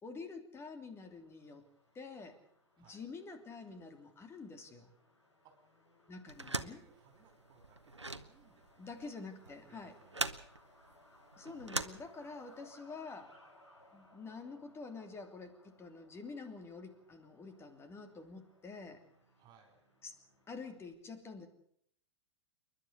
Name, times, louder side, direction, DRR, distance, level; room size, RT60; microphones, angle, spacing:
voice 1, 0.0-1.7 1.9-2.4 2.8-4.9 6.1-6.8 8.8-9.9 11.4-13.4 13.9-19.0 20.0-20.1 20.5-21.5, left 4 dB, 15° left, 7 dB, 3.1 m, -48 dB
Truck, 0.9-20.9, left 1 dB, 90° left, 7.4 m, -65 dB
sound 1, 6.3-12.6, right 2 dB, 90° right, 1.1 m, -42 dB
voice 2, 6.5-9.0 9.4-10.3 19.4-19.8, right 6 dB, 30° right, 5 dB, 4.9 m, -65 dB
28.0 x 11.5 x 8.2 m, 0.68 s
figure-of-eight pair, 100°, 14 cm